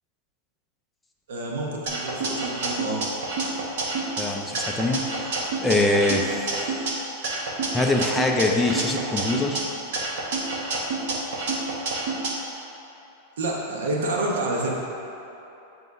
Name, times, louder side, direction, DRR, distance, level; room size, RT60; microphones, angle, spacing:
voice 1, 1.3-3.0 13.4-14.7, right 2 dB, 85° right, -2 dB, 1.1 m, -28 dB
sound 1, 1.9-4.2 4.5-6.9 7.2-9.6 9.9-12.3, right 3 dB, 55° right, 1.2 m, -28 dB
voice 2, 4.2-5.1 5.6-6.7 7.7-9.6, left 2 dB, 5° left, 1 dB, 0.4 m, -23 dB
7.4 x 3.3 x 5.3 m, 3.0 s
supercardioid pair, 170°, 0 cm